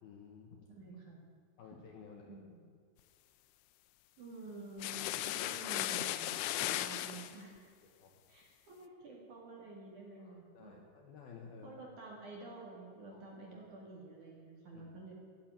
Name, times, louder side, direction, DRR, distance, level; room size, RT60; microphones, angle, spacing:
voice 1, 0.0-0.6 1.6-2.4 8.0-8.1 10.2-11.8 13.1-13.4 14.7-14.9, left 6 dB, 70° left, 1 dB, 2.4 m, -54 dB
voice 2, 0.7-1.2 2.2-2.5 4.2-7.7 8.3-10.8 11.6-15.1, right 2 dB, 50° right, -2 dB, 3.0 m, -50 dB
sound 1, 4.8-7.3, left 14 dB, 90° left, 3.2 m, -36 dB
13.5 x 10.0 x 8.9 m, 2.2 s
omnidirectional pair, 5.6 m